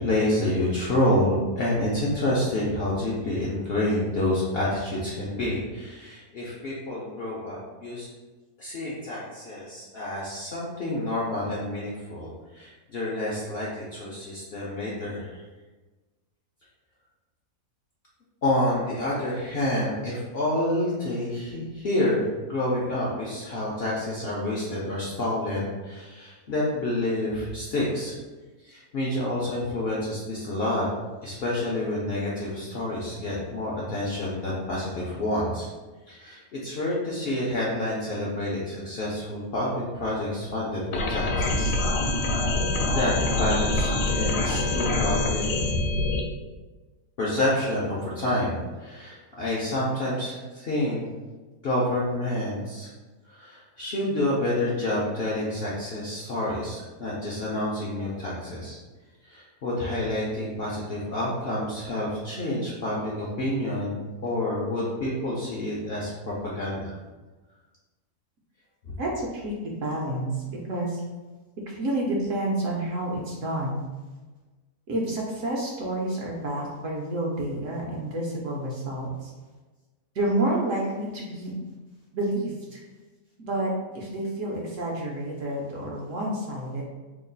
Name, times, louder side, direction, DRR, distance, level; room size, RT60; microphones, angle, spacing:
voice 1, 0.0-8.1 8.6-15.4 18.4-28.1 28.6-30.9 31.2-35.7 36.1-41.7 42.2-42.3 42.9-45.8 47.2-51.0 51.6-52.9 53.2-58.8 59.2-67.0 68.8-68.9, left 1 dB, 60° left, -6 dB, 0.6 m, -28 dB
sound 1, 40.9-46.2, left 2 dB, 90° left, 1.2 m, -25 dB
voice 2, 69.0-70.4 70.7-71.0 71.7-73.9 74.9-79.3 80.1-81.5 82.1-82.8 83.4-86.8, right 1 dB, 65° right, -2 dB, 0.9 m, -29 dB
3.0 x 2.3 x 3.8 m, 1.2 s
omnidirectional pair, 1.7 m